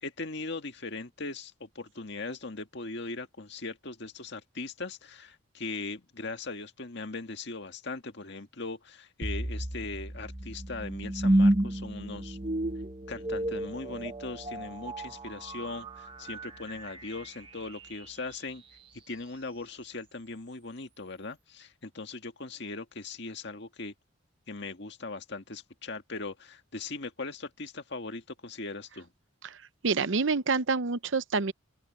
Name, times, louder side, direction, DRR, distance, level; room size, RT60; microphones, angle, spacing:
voice 1, 0.0-12.4 13.1-18.6 18.9-23.9 24.5-29.1, left 3 dB, 60° left, 1.9 m, -39 dB
sound 1, 9.2-18.3, right 1 dB, 25° right, 1.2 m, -31 dB
voice 2, 29.8-31.5, right 4 dB, 70° right, 0.7 m, -27 dB
open air
head